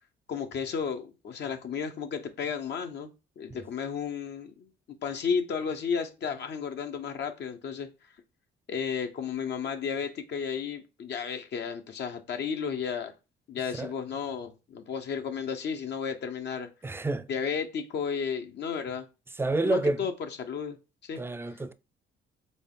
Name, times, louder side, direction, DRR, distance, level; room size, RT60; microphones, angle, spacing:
voice 1, 0.3-4.7 5.0-7.9 8.7-13.1 13.5-16.7 17.3-19.1 19.6-20.8 21.0-21.2, left 6 dB, 60° left, 0.7 m, -33 dB
voice 2, 16.8-17.3 19.4-20.1 21.2-21.7, right 2 dB, 10° right, 0.4 m, -28 dB
4.1 x 3.5 x 3.7 m
cardioid pair, 90°, 20 cm